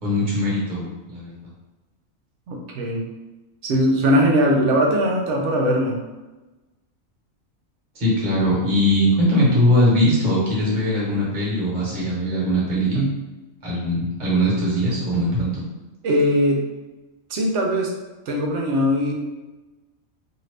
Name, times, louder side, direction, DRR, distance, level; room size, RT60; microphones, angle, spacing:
voice 1, 0.0-1.3 7.9-13.0 13.6-15.6, equal, 35° right, -6 dB, 1.2 m, -20 dB
voice 2, 2.5-3.1 3.6-6.0 12.9-13.1 16.0-16.6 17.3-17.9 18.3-19.1, equal, 65° right, 0 dB, 0.9 m, -20 dB
2.7 x 2.6 x 3.2 m, 1.1 s
omnidirectional pair, 1.4 m